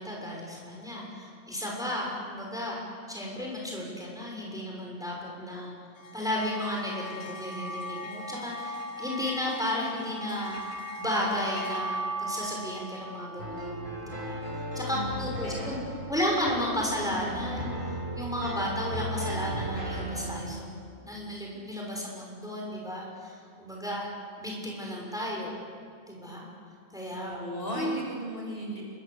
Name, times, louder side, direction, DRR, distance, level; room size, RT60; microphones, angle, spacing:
voice 1, 0.0-2.8 3.1-5.7 6.1-14.4 14.7-15.8 16.1-17.7 18.1-23.3 23.6-24.1 24.4-25.5 26.1-26.4 26.9-27.4 27.7-28.0, left 1 dB, ahead, -2 dB, 6.2 m, -33 dB
sound 1, 6.0-14.6, right 1 dB, 75° left, 2.0 m, -38 dB
sound 2, 13.4-20.4, right 1 dB, 35° right, 4.5 m, -35 dB
voice 2, 14.9-15.8 27.2-28.9, equal, 40° left, -2 dB, 7.3 m, -36 dB
29.0 x 25.0 x 8.2 m, 2.2 s
omnidirectional pair, 1.5 m